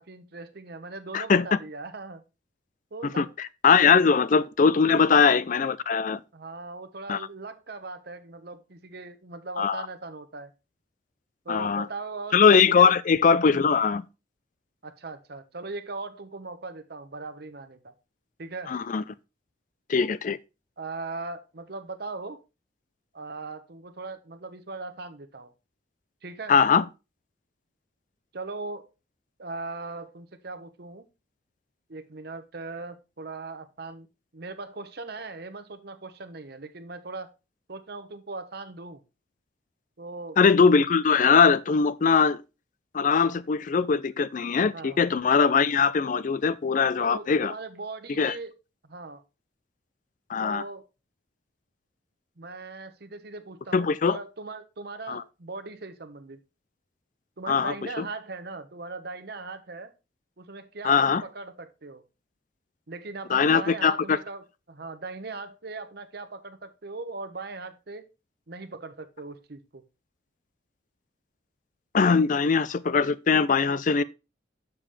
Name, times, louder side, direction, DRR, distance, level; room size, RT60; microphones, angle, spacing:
voice 1, 0.0-2.2 2.9-3.3 4.0-4.1 4.9-5.0 6.3-10.5 11.4-12.4 12.7-13.0 14.8-17.9 18.4-18.7 20.8-22.4 23.1-25.5 26.2-26.5 28.3-28.9 29.4-31.1 31.9-34.1 34.3-37.3 37.7-39.0 40.0-40.4 44.7-45.0 47.0-48.5 48.9-49.2 50.4-50.9 52.4-56.4 57.4-59.9 60.4-62.0 62.9-68.1 68.5-69.8, right 3 dB, 55° right, 0.9 m, -39 dB
voice 2, 1.1-1.6 3.0-6.2 7.1-7.2 9.6-9.8 11.5-11.9 12.3-14.0 18.7-19.0 19.9-20.4 26.5-26.8 40.4-42.4 42.9-47.5 48.2-48.3 50.3-50.6 53.7-54.2 55.1-55.2 57.5-58.0 60.8-61.2 63.3-64.2 71.9-74.0, left 5 dB, 45° left, 0.4 m, -21 dB
7.3 x 6.9 x 3.4 m
head